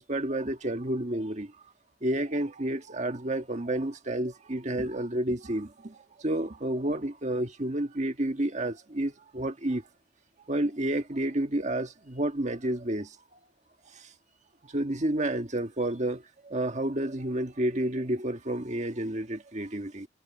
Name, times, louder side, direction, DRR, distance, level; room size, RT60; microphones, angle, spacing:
voice 1, 0.0-1.5 2.0-9.8 10.5-13.1 13.9-14.1 14.7-20.1, right 1 dB, 40° right, 1.5 m, -30 dB
head